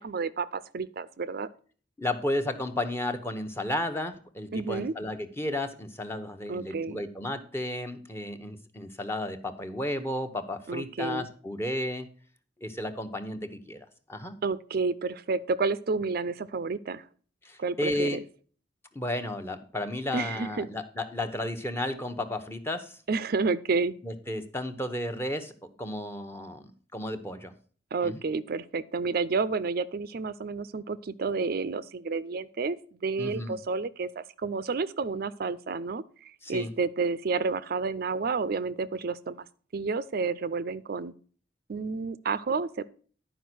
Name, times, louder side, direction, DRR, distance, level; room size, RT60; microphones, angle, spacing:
voice 1, 0.0-1.5 4.5-4.9 6.5-7.0 10.7-11.3 14.4-17.0 17.6-18.2 20.1-20.7 23.1-24.0 27.9-39.4 39.7-41.1 41.7-42.8, right 4 dB, 55° right, 15 dB, 0.5 m, -30 dB
voice 2, 2.0-12.1 12.6-14.4 17.4-18.2 18.9-23.0 24.0-26.6 26.9-27.5 28.0-28.2 33.2-33.6 36.4-36.7, left 1 dB, 15° left, 7 dB, 0.9 m, -33 dB
11.0 x 5.0 x 6.1 m, 0.42 s
head